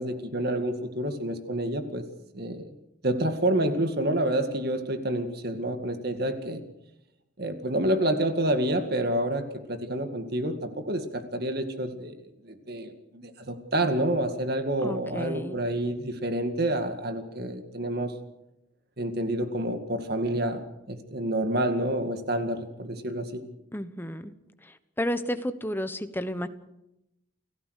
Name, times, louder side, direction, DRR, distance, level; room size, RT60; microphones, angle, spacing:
voice 1, 0.0-2.0 2.3-2.7 3.0-6.6 7.4-12.1 12.4-18.2 19.0-23.4, right 1 dB, 55° right, 8 dB, 2.1 m, -28 dB
voice 2, 14.8-15.6 23.7-24.3 25.0-26.5, equal, 10° left, 10 dB, 1.1 m, -31 dB
29.5 x 15.0 x 6.6 m, 0.86 s
head